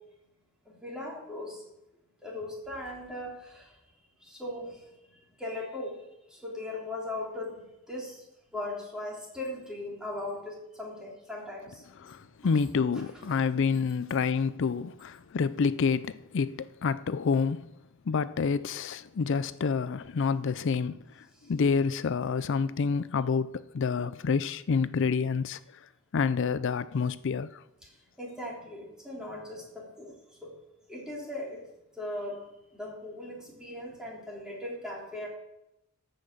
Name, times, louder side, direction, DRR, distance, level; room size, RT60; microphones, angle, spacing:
voice 1, 0.7-1.6 2.2-3.6 4.2-4.8 5.4-5.9 6.4-7.6 7.9-8.2 8.5-11.6 13.1-13.4 28.2-30.1 30.4-30.5 30.9-31.6 32.0-32.4 32.7-35.3, left 1 dB, 5° right, 3.5 m, -38 dB
voice 2, 12.0-17.7 18.1-21.0 21.5-25.6 26.1-27.5, left 5 dB, 65° left, 0.4 m, -28 dB
14.0 x 5.9 x 6.7 m
head